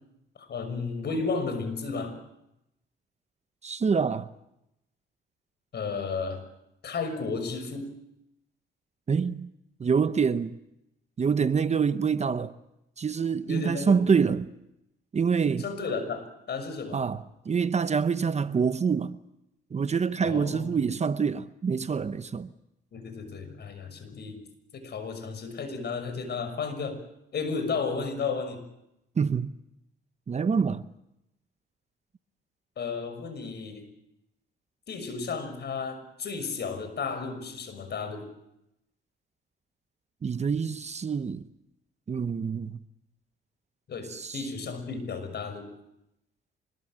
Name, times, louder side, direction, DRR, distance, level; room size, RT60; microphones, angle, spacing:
voice 1, 0.4-2.2 5.7-6.4 6.8-7.9 13.5-14.0 15.6-17.0 20.2-20.7 22.9-24.4 24.7-27.0 27.3-28.6 32.8-33.8 34.9-38.3 43.9-45.7, left 4 dB, 55° left, 6.1 m, -33 dB
voice 2, 3.6-4.3 9.1-9.5 9.8-10.6 11.2-12.5 13.0-14.5 15.1-15.7 16.9-19.2 19.7-22.5 29.2-29.5 30.3-30.8 40.2-41.5 42.1-42.8 44.1-44.4, right 6 dB, 35° right, 0.9 m, -26 dB
25.5 x 21.5 x 7.6 m
cardioid pair, 90°, 20 cm